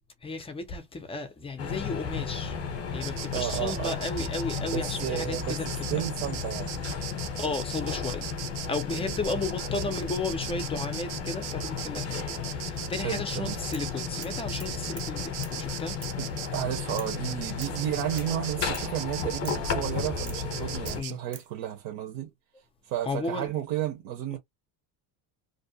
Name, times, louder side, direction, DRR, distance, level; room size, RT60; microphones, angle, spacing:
voice 1, 0.2-2.6 2.9-5.7 7.4-8.3 8.7-16.0 20.9-21.2 23.0-23.5, left 3 dB, 15° left, 0.4 m, -34 dB
sound 1, 1.6-21.0, left 6 dB, 30° left, 0.7 m, -34 dB
Insect, 3.0-21.2, right 14 dB, 85° right, 0.6 m, -39 dB
voice 2, 3.3-4.0 4.6-5.6 5.9-6.8 8.9-9.2 13.0-13.6 16.2-22.3 22.8-24.4, right 11 dB, 60° right, 0.9 m, -32 dB
sound 2, 13.7-13.9 14.2-15.1 15.4-15.6 16.0-16.2 17.0-17.2 17.6-17.8 18.2-18.3 18.7-18.9 19.4-19.7 20.3-20.5 20.9-21.5, right 6 dB, 25° right, 0.6 m, -46 dB
2.6 x 2.1 x 2.6 m
cardioid pair, 155°, 46 cm